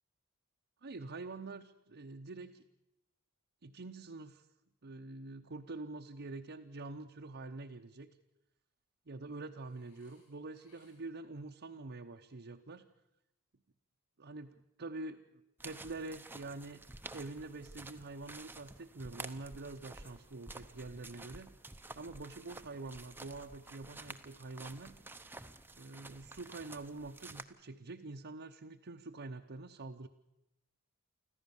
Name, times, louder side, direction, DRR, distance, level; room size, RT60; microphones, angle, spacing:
voice 1, 0.8-2.6 3.6-4.5 4.8-8.1 9.1-12.8 14.2-16.8 17.1-21.5 21.9-25.0 25.7-30.1, right 3 dB, 50° right, 2 dB, 0.8 m, -46 dB
Burping eructation, 9.6-11.3 20.0-20.8, left 2 dB, 90° left, 7.1 m, -71 dB
sound 1, 15.6-27.4, right 2 dB, 10° right, 0.8 m, -51 dB
25.5 x 14.5 x 7.1 m, 0.89 s
head